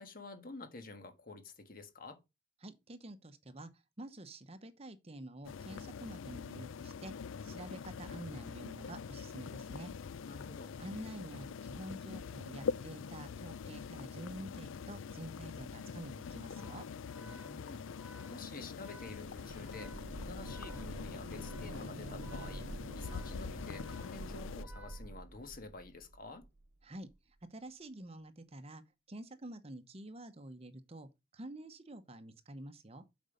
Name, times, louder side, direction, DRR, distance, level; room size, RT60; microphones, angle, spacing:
voice 1, 0.0-2.2 10.2-10.7 17.2-19.9 20.2-22.6 22.9-26.5, left 3 dB, 45° left, 1.6 m, -49 dB
voice 2, 2.6-7.1 7.4-9.9 10.8-16.8 26.8-28.8 29.1-33.0, right 1 dB, 30° right, 0.9 m, -48 dB
sound 1, 5.4-24.6, left 6 dB, 85° left, 0.4 m, -44 dB
Organ, 16.5-25.6, left 1 dB, 5° right, 0.9 m, -59 dB
sound 2, 19.0-26.8 27.1-27.2, right 2 dB, 70° right, 0.9 m, -47 dB
7.9 x 5.2 x 5.2 m
head